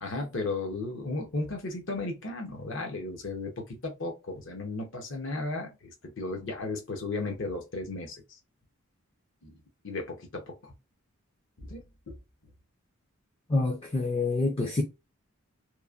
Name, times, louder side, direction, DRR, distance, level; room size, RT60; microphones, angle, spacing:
voice 1, 0.0-8.4 9.4-9.6 9.8-10.7 11.6-12.1, left 2 dB, 55° left, 0.8 m, -35 dB
voice 2, 13.5-14.8, left 3 dB, 25° left, 0.4 m, -27 dB
3.0 x 2.1 x 2.4 m
head